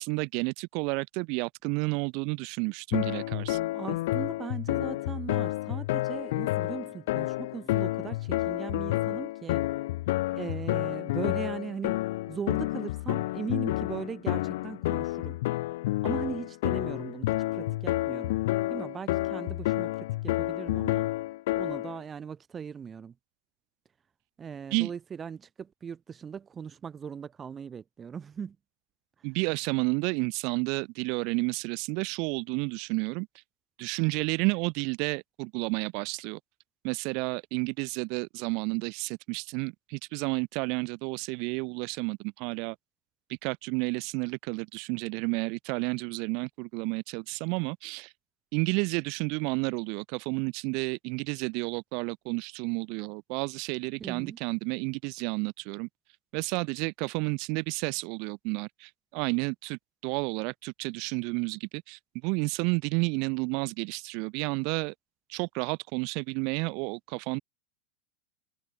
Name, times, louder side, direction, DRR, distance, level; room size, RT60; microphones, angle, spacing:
voice 1, 0.0-3.6 24.7-24.9 29.2-33.3 33.8-36.4 36.8-42.7 43.3-48.1 48.5-55.9 56.3-64.9 65.3-67.4, right 33 dB, 50° right, 4.7 m, -31 dB
sound 1, 2.9-22.0, left 17 dB, 65° left, 0.8 m, -30 dB
voice 2, 3.7-9.6 10.3-12.0 12.3-15.4 16.0-18.4 18.7-21.1 21.5-23.1 24.4-28.6 54.0-54.4, right 7 dB, 20° right, 4.0 m, -39 dB
supercardioid pair, 145°, 0 cm